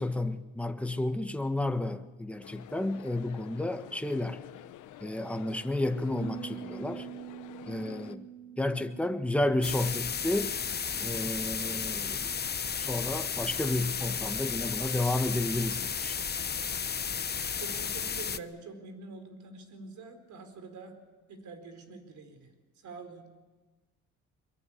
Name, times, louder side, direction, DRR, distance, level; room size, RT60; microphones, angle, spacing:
voice 1, 0.0-4.4 5.0-7.1 7.7-8.2 8.6-10.5 11.0-12.3 12.8-16.1, left 1 dB, 5° left, 1.4 m, -31 dB
sound 1, 2.4-8.2, left 13 dB, 80° left, 1.0 m, -49 dB
Bass guitar, 6.1-12.4, right 10 dB, 45° right, 7.6 m, -46 dB
sound 2, 9.6-18.4, left 7 dB, 35° left, 0.9 m, -33 dB
voice 2, 17.6-21.0 21.3-22.5 22.8-23.3, right 3 dB, 70° right, 4.4 m, -45 dB
23.5 x 23.0 x 8.7 m
cardioid pair, 90°, 30 cm